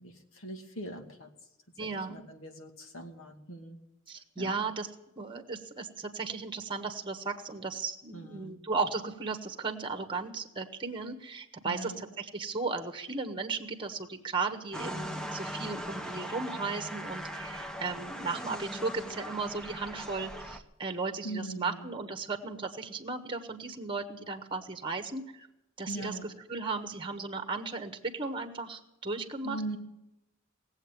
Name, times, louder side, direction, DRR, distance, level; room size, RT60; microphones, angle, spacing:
voice 1, 0.0-1.3 1.8-3.8 4.4-4.6 8.1-8.6 11.6-12.0 21.2-21.9 25.9-26.3 29.4-29.8, right 1 dB, 80° left, 4 dB, 2.3 m, -41 dB
voice 2, 1.8-2.2 4.1-4.9 5.2-25.5 25.8-29.8, right 4 dB, 25° right, 6 dB, 1.4 m, -36 dB
sound 1, 14.7-20.6, equal, 5° left, 1.0 m, -39 dB
18.5 x 8.0 x 9.1 m, 0.90 s
head